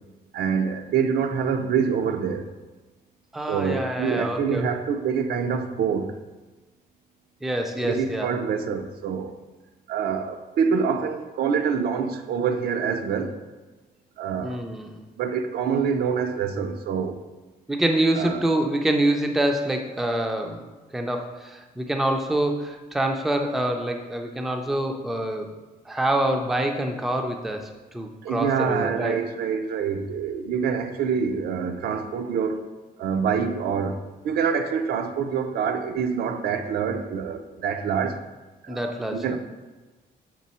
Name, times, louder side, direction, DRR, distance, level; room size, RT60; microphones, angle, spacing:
voice 1, 0.3-2.5 3.5-6.1 7.8-9.3 9.9-13.4 14.2-14.6 15.2-17.2 18.2-18.4 28.2-32.7 33.0-38.2 38.6-39.4, right 6 dB, 75° right, 0.5 m, -26 dB
voice 2, 3.3-4.7 7.4-8.3 14.4-15.0 17.7-25.5 25.9-29.2 38.7-39.4, right 1 dB, ahead, 0.4 m, -26 dB
6.2 x 3.7 x 4.2 m
cardioid pair, 175°, 16 cm